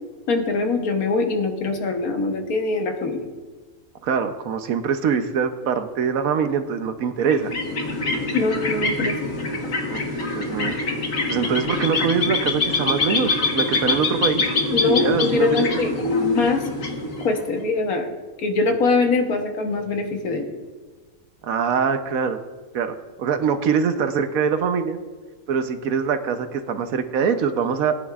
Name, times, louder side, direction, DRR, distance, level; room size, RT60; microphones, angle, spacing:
voice 1, 0.3-3.2 8.3-9.2 14.7-16.6 17.2-18.1 18.4-20.5, left 3 dB, 85° left, 4 dB, 1.6 m, -23 dB
voice 2, 4.0-7.5 9.9-10.8 11.3-14.5 14.9-15.7 21.4-22.4 22.7-25.0 25.5-28.0, right 6 dB, 75° right, 9 dB, 1.2 m, -23 dB
sound 1, 7.2-17.6, left 3 dB, 65° left, 1.7 m, -24 dB
17.0 x 9.9 x 2.4 m, 1.4 s
omnidirectional pair, 1.5 m